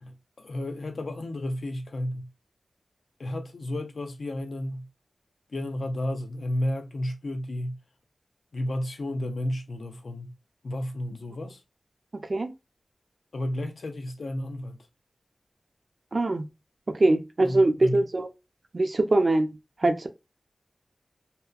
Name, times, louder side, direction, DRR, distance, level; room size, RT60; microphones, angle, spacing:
voice 1, 0.0-2.3 3.2-4.9 5.5-7.8 8.5-10.3 10.6-11.6 13.3-14.8 17.4-18.0, left 1 dB, 75° left, 0.4 m, -32 dB
voice 2, 16.1-16.5 16.9-18.3 18.7-19.5 19.8-20.1, right 2 dB, 50° right, 0.4 m, -22 dB
2.7 x 2.1 x 2.3 m
wide cardioid pair, 60°, 0 cm